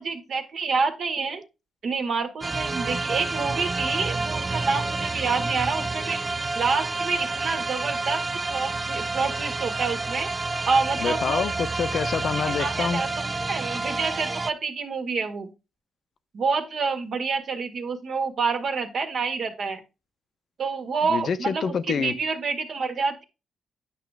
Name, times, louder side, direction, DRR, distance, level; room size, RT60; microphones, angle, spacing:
voice 1, 0.0-1.4 1.8-6.2 6.5-8.2 8.5-10.3 10.6-11.5 12.5-15.5 16.3-19.8 20.6-23.2, right 4 dB, 65° right, 1.7 m, -28 dB
sound 1, 2.4-14.5, right 3 dB, 30° right, 0.4 m, -29 dB
voice 2, 11.0-13.0 21.1-22.1, left 6 dB, 65° left, 0.7 m, -27 dB
9.2 x 5.8 x 3.4 m
cardioid pair, 80°, 0 cm